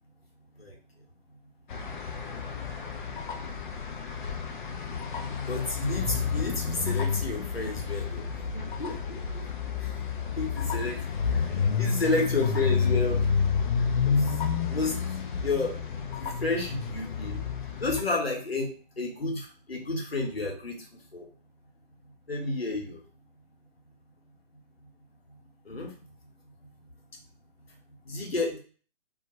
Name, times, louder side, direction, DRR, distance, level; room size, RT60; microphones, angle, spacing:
sound 1, 1.7-18.0, left 6 dB, 55° left, 0.4 m, -30 dB
voice 1, 5.5-8.2 8.5-9.2 10.4-11.0 11.8-13.2 14.1-14.2 14.7-14.9 15.4-15.7 16.2-17.4 17.8-18.7 19.0-20.7 21.1-21.2 22.3-23.0 25.7-25.9 28.1-28.6, left 3 dB, 85° left, 0 dB, 1.0 m, -30 dB
2.3 x 2.1 x 2.7 m, 0.41 s
figure-of-eight pair, 130°, 29 cm